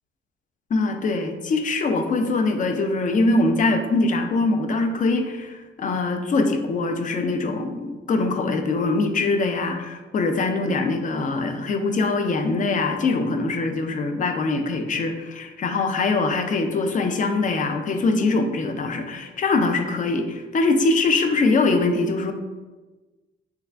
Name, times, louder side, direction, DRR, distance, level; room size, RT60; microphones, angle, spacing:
voice 1, 0.7-22.3, left 3 dB, 40° left, 6 dB, 0.4 m, -23 dB
3.3 x 2.4 x 3.3 m, 1.2 s
cardioid pair, 90°, 20 cm